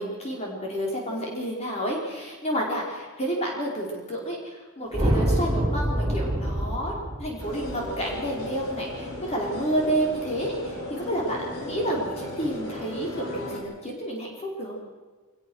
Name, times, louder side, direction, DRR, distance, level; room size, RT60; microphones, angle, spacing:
voice 1, 0.0-4.4 4.8-6.9 7.2-14.8, right 1 dB, 30° left, -2 dB, 4.8 m, -30 dB
sound 1, 4.9-9.3, right 1 dB, 20° right, 4.4 m, -27 dB
sound 2, 7.4-13.6, left 1 dB, 85° left, 5.8 m, -36 dB
23.5 x 20.5 x 6.4 m, 1.3 s
head